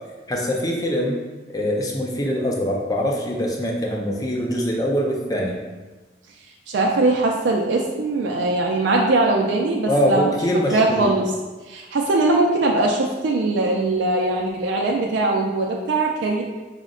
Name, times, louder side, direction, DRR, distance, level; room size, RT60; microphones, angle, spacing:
voice 1, 0.3-1.2 1.5-5.6 9.9-11.1, equal, 20° left, -1 dB, 0.5 m, -23 dB
voice 2, 6.7-10.4 10.7-11.3 11.7-16.4, right 2 dB, 85° right, 0 dB, 0.4 m, -21 dB
4.9 x 2.1 x 3.7 m, 1.2 s
head